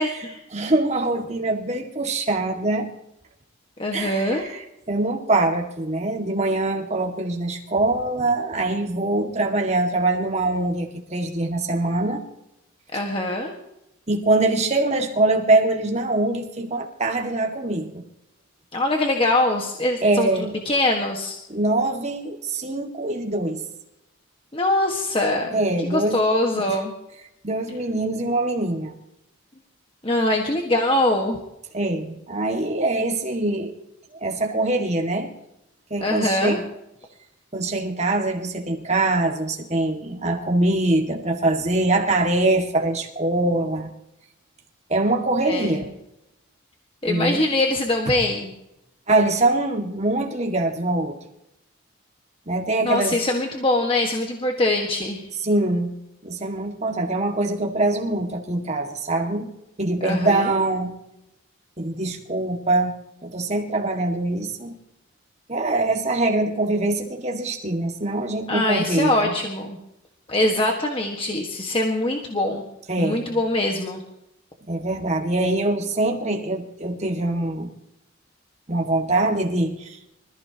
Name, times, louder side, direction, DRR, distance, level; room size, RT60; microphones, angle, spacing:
voice 1, 0.0-0.4 3.8-4.4 12.9-13.5 18.7-21.4 24.5-26.9 30.0-31.4 36.0-36.6 45.4-45.8 47.0-48.5 52.8-55.2 60.0-60.5 68.5-69.8 70.3-72.6 73.0-74.0, left 1 dB, 25° left, 1 dB, 1.6 m, -23 dB
voice 2, 0.5-2.9 3.9-12.2 14.1-18.0 20.0-20.5 21.5-23.6 25.5-26.8 27.4-28.9 31.7-33.7 34.2-35.3 35.9-36.6 37.5-43.9 44.9-45.9 47.1-47.4 49.1-51.2 52.5-53.2 55.4-55.9 56.2-59.5 59.8-61.0 61.8-63.0 63.2-64.7 65.5-69.3 72.9-73.4 74.7-77.7 78.7-80.0, right 2 dB, 35° right, 2 dB, 2.1 m, -23 dB
25.5 x 15.0 x 3.0 m, 0.85 s
head